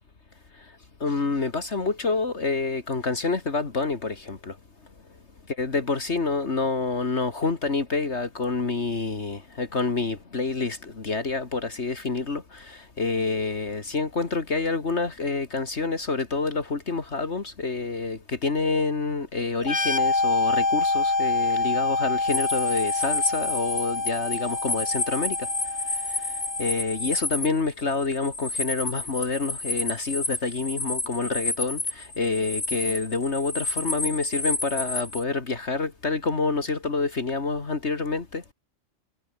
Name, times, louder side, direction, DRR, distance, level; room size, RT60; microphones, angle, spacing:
voice 1, 1.0-4.6 5.6-25.5 25.9-38.5, left 3 dB, 55° left, 2.4 m, -28 dB
sound 1, 19.6-27.1, left 3 dB, 35° left, 2.4 m, -26 dB
sound 2, 22.3-35.2, left 2 dB, 90° left, 7.6 m, -30 dB
omnidirectional pair, 1.4 m